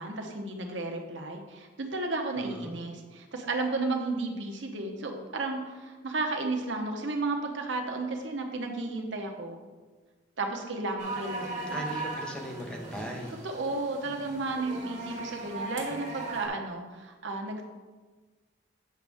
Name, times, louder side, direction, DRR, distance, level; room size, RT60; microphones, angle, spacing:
voice 1, 0.0-9.6 10.4-11.9 13.4-17.6, right 2 dB, 65° right, 3 dB, 1.0 m, -33 dB
voice 2, 2.4-2.8 11.7-13.3, equal, 5° left, 0 dB, 0.8 m, -38 dB
sound 1, 11.0-16.5, right 3 dB, 35° right, 2.1 m, -38 dB
8.9 x 6.2 x 3.5 m, 1.4 s
head